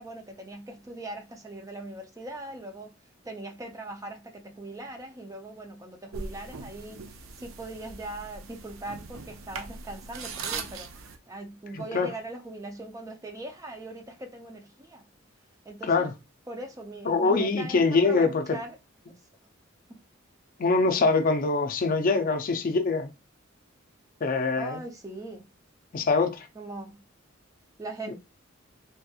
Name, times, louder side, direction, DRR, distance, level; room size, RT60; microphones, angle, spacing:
voice 1, 0.0-2.9 3.2-7.0 7.4-10.9 11.3-15.0 15.6-16.0 16.5-18.8 19.9-20.0 24.5-25.5 26.6-27.0 27.8-28.1, right 1 dB, 15° right, 0.5 m, -40 dB
sound 1, 6.1-11.2, right 5 dB, 80° right, 0.5 m, -40 dB
voice 2, 11.7-12.1 15.8-16.1 17.1-18.6 20.6-23.1 24.2-24.8 25.9-26.5 28.1-28.2, left 3 dB, 45° left, 0.4 m, -24 dB
3.4 x 2.8 x 2.3 m
head